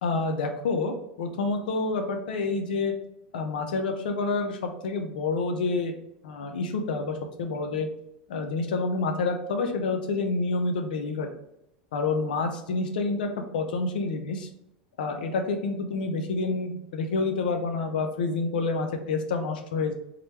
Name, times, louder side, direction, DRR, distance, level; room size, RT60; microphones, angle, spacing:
voice 1, 0.0-2.9 3.3-5.9 6.2-7.9 8.3-11.3 11.9-14.5 15.0-19.9, left 3 dB, 85° left, 5 dB, 0.7 m, -28 dB
3.7 x 3.3 x 2.9 m, 0.81 s
supercardioid pair, 120°, 5 cm